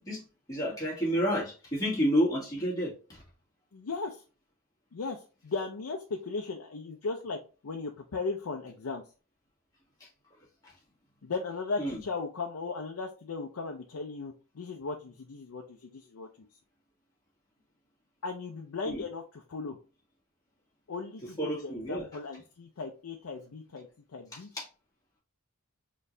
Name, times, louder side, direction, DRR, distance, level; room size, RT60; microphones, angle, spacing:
voice 1, 0.5-3.2 11.8-12.0 18.9-19.0 21.4-22.1 24.6-24.7, equal, 15° left, -5 dB, 1.8 m, -29 dB
voice 2, 3.7-4.2 4.9-7.4 7.6-9.0 11.2-16.3 18.2-19.8 20.9-24.5, left 4 dB, 75° left, 2 dB, 0.5 m, -37 dB
4.2 x 3.1 x 2.6 m, 0.34 s
head